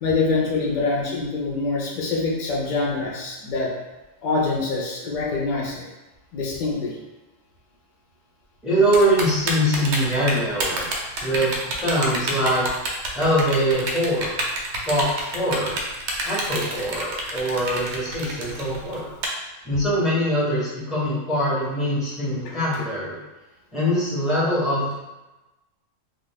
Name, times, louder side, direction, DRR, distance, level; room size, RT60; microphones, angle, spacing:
voice 1, 0.0-3.7 4.2-5.9 6.3-6.9, left 3 dB, 50° left, -3 dB, 0.6 m, -25 dB
voice 2, 8.6-12.7 13.1-14.4 14.8-15.8 16.2-19.1 19.6-23.2 23.7-24.9, equal, ahead, -8 dB, 0.7 m, -23 dB
Typing, 8.9-19.3, right 2 dB, 70° right, 0.8 m, -28 dB
2.4 x 2.3 x 3.4 m, 1.1 s
omnidirectional pair, 1.3 m